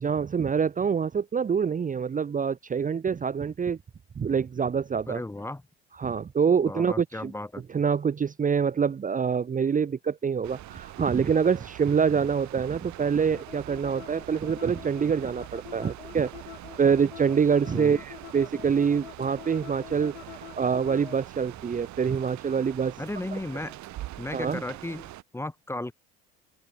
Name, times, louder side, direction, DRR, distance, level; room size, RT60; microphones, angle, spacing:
voice 1, 0.0-3.8 4.2-5.2 6.0-7.3 7.7-16.3 16.8-20.1 20.6-22.9 24.3-24.6, right 6 dB, 25° right, 0.9 m, -25 dB
voice 2, 5.1-5.6 6.6-7.6 17.7-18.0 23.0-23.8 24.2-25.1 25.3-25.9, left 1 dB, 10° left, 1.3 m, -35 dB
sound 1, 10.4-25.2, right 15 dB, 55° right, 8.0 m, -44 dB
sound 2, 13.0-21.2, left 12 dB, 85° left, 4.5 m, -45 dB
open air
hypercardioid pair, 60°, 33 cm